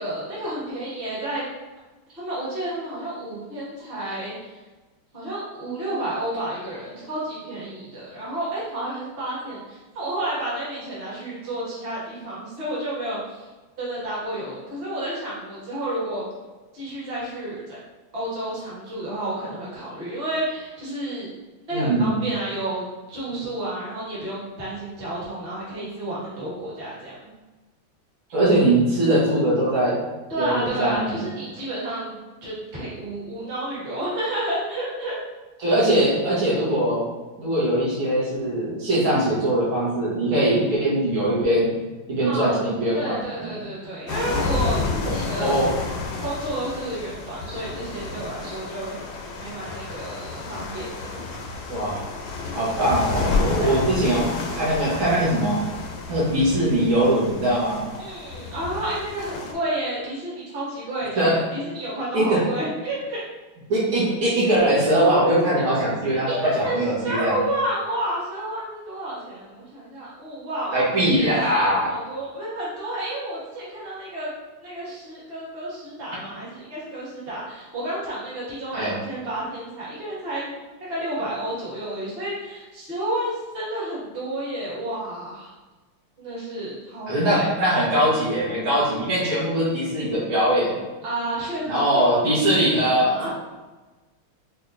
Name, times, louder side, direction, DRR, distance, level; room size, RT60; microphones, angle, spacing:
voice 1, 0.0-1.4 2.1-4.6 5.1-13.4 13.8-16.2 16.7-17.8 18.1-21.3 21.7-27.3 30.3-32.2 32.4-35.2 42.2-42.6 42.9-45.6 46.2-48.9 49.4-51.2 53.6-53.8 58.0-63.2 66.3-70.9 71.5-74.3 74.6-80.5 80.9-85.5 86.2-87.5 91.0-93.3, right 1 dB, 35° right, -8 dB, 1.2 m, -31 dB
voice 2, 21.7-22.2 28.3-30.0 30.4-31.1 35.6-37.0 37.4-41.7 42.1-43.1 43.4-43.6 45.4-45.7 51.7-52.0 52.6-55.6 56.1-57.8 61.2-61.4 62.1-62.4 63.7-67.3 70.7-71.9 78.7-78.9 87.1-90.8 91.7-93.3, right 1 dB, 70° right, -7 dB, 2.0 m, -21 dB
sound 1, 44.1-59.5, left 4 dB, 80° left, 0.9 m, -30 dB
4.9 x 2.5 x 2.6 m, 1.2 s
omnidirectional pair, 2.3 m